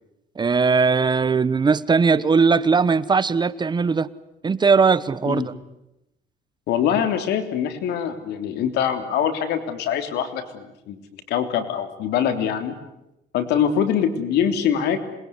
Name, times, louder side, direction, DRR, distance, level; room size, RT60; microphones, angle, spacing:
voice 1, 0.4-4.1 4.4-5.5, right 5 dB, 25° right, 17 dB, 1.0 m, -19 dB
voice 2, 6.7-12.8 13.3-15.0, left 8 dB, 80° left, 8 dB, 3.3 m, -24 dB
27.0 x 21.5 x 9.7 m, 0.90 s
cardioid pair, 110°, 17 cm